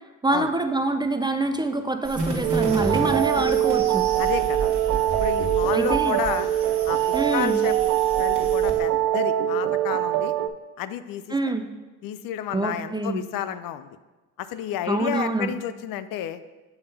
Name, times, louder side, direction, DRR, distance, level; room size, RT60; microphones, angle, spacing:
voice 1, 0.2-4.1 5.7-6.2 7.1-7.6 11.3-11.7 12.5-13.2 14.9-15.5, right 2 dB, 15° right, 7 dB, 0.3 m, -25 dB
sound 1, 2.0-8.8, right 2 dB, 40° right, 1.8 m, -32 dB
sound 2, 2.4-10.5, right 12 dB, 75° right, 0.5 m, -23 dB
voice 2, 4.2-4.7 5.2-6.5 6.9-7.0 7.3-7.8 8.2-10.3 10.8-11.5 12.0-13.9 14.4-16.4, left 11 dB, 70° left, 13 dB, 0.5 m, -31 dB
7.0 x 3.3 x 5.4 m, 1.2 s
supercardioid pair, 75°, 36 cm